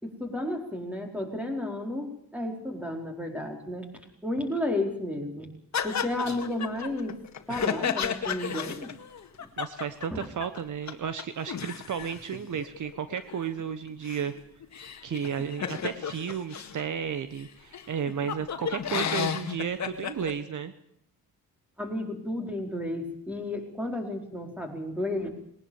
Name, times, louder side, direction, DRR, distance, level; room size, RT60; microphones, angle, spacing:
voice 1, 0.0-5.5 5.8-7.2 7.5-8.9 9.4-9.5 10.1-10.3 21.8-25.3, left 1 dB, 5° right, 3 dB, 4.5 m, -32 dB
sound 1, 5.7-10.6 10.9-11.0 11.2-16.8 17.4-17.5 17.7-20.3, left 7 dB, 50° left, 2.0 m, -33 dB
voice 2, 9.6-14.3 14.8-20.7, right 7 dB, 55° right, 12 dB, 1.2 m, -33 dB
21.0 x 19.0 x 7.2 m, 0.72 s
cardioid pair, 130°, 36 cm